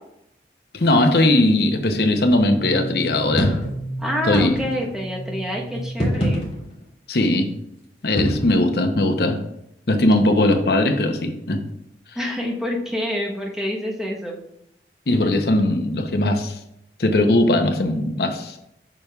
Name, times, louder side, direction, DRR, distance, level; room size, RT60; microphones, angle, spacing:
voice 1, 0.7-3.6 4.3-4.5 7.1-7.5 8.0-9.4 9.9-11.6 15.1-16.6 17.0-18.6, left 1 dB, 60° left, 5 dB, 0.8 m, -19 dB
sound 1, 1.8-6.7, right 2 dB, 30° right, 2.4 m, -35 dB
sound 2, 3.0-3.8 4.3-5.0 5.8-6.8 8.2-8.5, equal, 30° left, 2.3 m, -24 dB
voice 2, 4.0-6.5 12.1-14.4, left 1 dB, 5° right, -2 dB, 1.0 m, -27 dB
7.6 x 6.7 x 2.4 m, 0.81 s
head